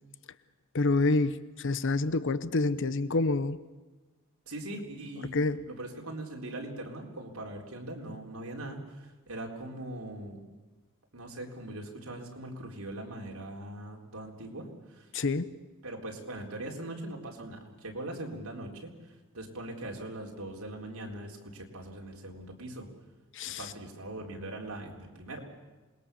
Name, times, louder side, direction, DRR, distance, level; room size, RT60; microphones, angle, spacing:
voice 1, 0.7-3.6 5.3-5.7 15.1-15.5 23.3-23.7, left 3 dB, 60° left, 14 dB, 0.9 m, -27 dB
voice 2, 4.5-5.4 5.7-10.4 11.1-15.1 15.8-18.9 19.3-22.9 23.6-25.5, right 1 dB, 85° right, 0 dB, 4.0 m, -41 dB
27.0 x 20.5 x 6.9 m, 1.2 s
head